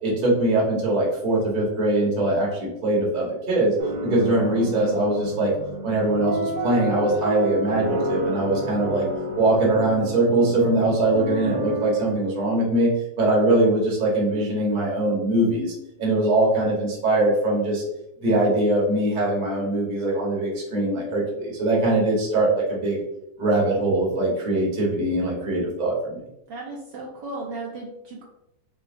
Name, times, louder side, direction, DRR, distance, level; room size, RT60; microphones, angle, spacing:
voice 1, 0.0-3.7 4.0-5.5 5.8-9.0 9.3-12.9 13.2-17.8 18.2-23.0 23.4-26.2, right 2 dB, 30° right, -4 dB, 0.9 m, -22 dB
sound 1, 3.8-12.1, right 1 dB, 90° right, 0.7 m, -30 dB
voice 2, 26.5-28.2, right 2 dB, 65° right, -3 dB, 1.2 m, -35 dB
5.6 x 2.1 x 2.6 m, 0.83 s
omnidirectional pair, 2.3 m